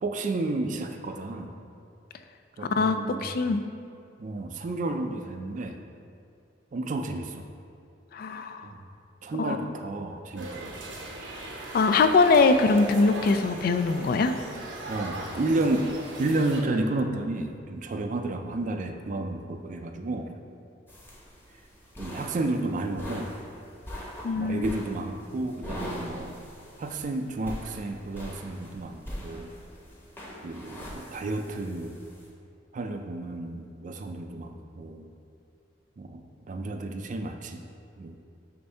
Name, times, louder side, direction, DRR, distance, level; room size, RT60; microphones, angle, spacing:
voice 1, 0.0-1.5 2.6-3.6 4.2-5.8 6.7-7.5 8.6-8.8 9.2-10.7 14.9-15.9 16.2-20.4 22.0-23.3 24.4-26.4 26.8-29.5 30.4-31.9 32.7-35.1 36.0-37.6 38.0-38.2, right 2 dB, 40° right, 5 dB, 0.4 m, -31 dB
voice 2, 2.6-3.6 8.1-8.7 9.3-9.7 11.7-14.3 24.2-24.8, left 3 dB, 50° left, 8 dB, 0.3 m, -23 dB
sound 1, 10.3-16.6, right 2 dB, 70° right, 0.7 m, -39 dB
sound 2, 20.9-32.3, equal, 10° left, 0.9 m, -42 dB
6.6 x 2.6 x 5.4 m, 2.4 s
head